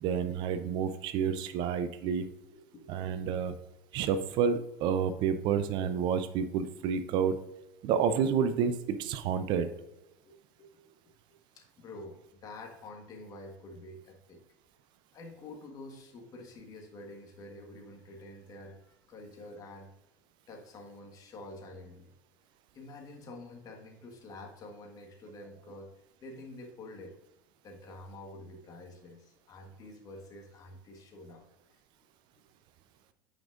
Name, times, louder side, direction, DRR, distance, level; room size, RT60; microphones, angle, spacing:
voice 1, 0.0-2.3 2.9-3.5 3.9-7.4 7.8-9.7, right 7 dB, 50° right, 11 dB, 0.6 m, -29 dB
voice 2, 2.5-2.9 10.2-10.9 11.3-14.4 15.1-19.9 20.5-22.1 22.7-25.9 26.2-27.1 27.6-31.5 32.4-32.5, left 2 dB, 40° left, 2 dB, 1.5 m, -48 dB
9.0 x 5.1 x 2.5 m, 0.92 s
hypercardioid pair, 85°, 10 cm